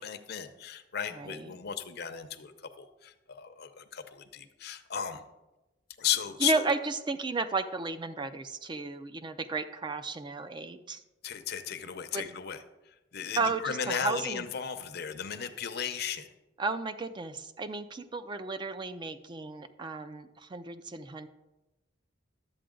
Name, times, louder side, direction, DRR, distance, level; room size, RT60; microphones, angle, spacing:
voice 1, 0.0-5.2 6.0-6.6 11.2-12.6 13.1-16.3, left 8 dB, 55° left, 9 dB, 0.7 m, -35 dB
voice 2, 1.1-1.6 6.4-11.0 12.1-12.2 13.4-14.5 16.6-21.3, right 3 dB, 25° right, 10 dB, 0.4 m, -33 dB
11.5 x 7.6 x 3.8 m, 1.0 s
head